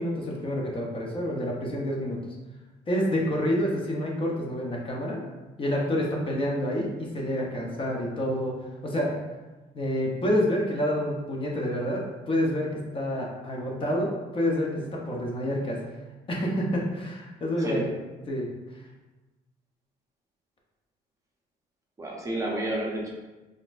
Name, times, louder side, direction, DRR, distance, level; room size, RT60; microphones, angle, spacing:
voice 1, 0.0-2.2 2.9-5.2 5.6-8.5 8.8-9.1 9.7-15.8 16.3-17.9 18.3-18.5, equal, 30° left, -2 dB, 0.8 m, -28 dB
voice 2, 17.6-17.9 22.0-23.1, right 1 dB, 20° right, -3 dB, 0.6 m, -30 dB
4.0 x 2.6 x 2.5 m, 1.2 s
cardioid pair, 110°, 17 cm